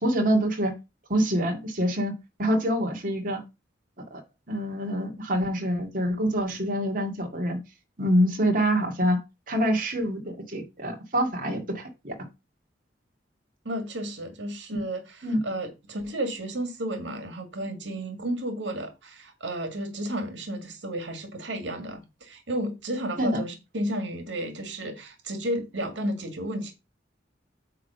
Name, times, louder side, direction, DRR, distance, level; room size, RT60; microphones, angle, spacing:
voice 1, 0.0-0.7 1.1-2.1 2.4-3.4 4.1-4.2 4.5-7.6 8.0-9.2 9.5-12.1 14.7-14.8 15.2-15.4 23.2-23.4, equal, 50° right, 2.1 m, -26 dB
voice 2, 13.7-26.7, right 1 dB, 90° right, 2.0 m, -32 dB
9.3 x 3.4 x 6.8 m
head